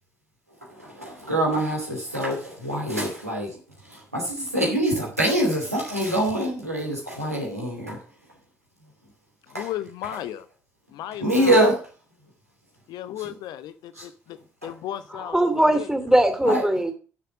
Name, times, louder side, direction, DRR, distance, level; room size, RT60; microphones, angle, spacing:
voice 1, 0.6-3.6 3.8-8.0 9.5-9.7 11.2-11.8 13.2-13.3 14.0-14.1 14.6-14.7 16.4-16.6, right 1 dB, 90° right, 2.6 m, -25 dB
voice 2, 9.5-10.5 10.9-11.6 12.9-15.4 15.7-15.9, left 12 dB, 60° left, 1.0 m, -35 dB
voice 3, 15.2-16.9, right 1 dB, 5° right, 2.7 m, -20 dB
11.5 x 6.9 x 5.9 m
figure-of-eight pair, 45°, 8 cm